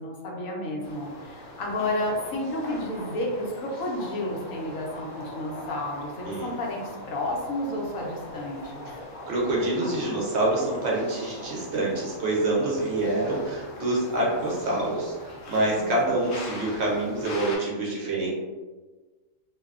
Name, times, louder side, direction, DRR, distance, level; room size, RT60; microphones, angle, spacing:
voice 1, 0.0-8.9 15.8-16.0, left 1 dB, 85° left, -1 dB, 1.0 m, -31 dB
sound 1, 0.8-17.6, left 1 dB, 65° left, 0.8 m, -41 dB
voice 2, 9.3-18.3, right 2 dB, 65° right, -4 dB, 0.8 m, -26 dB
2.5 x 2.1 x 2.3 m, 1.3 s
omnidirectional pair, 1.4 m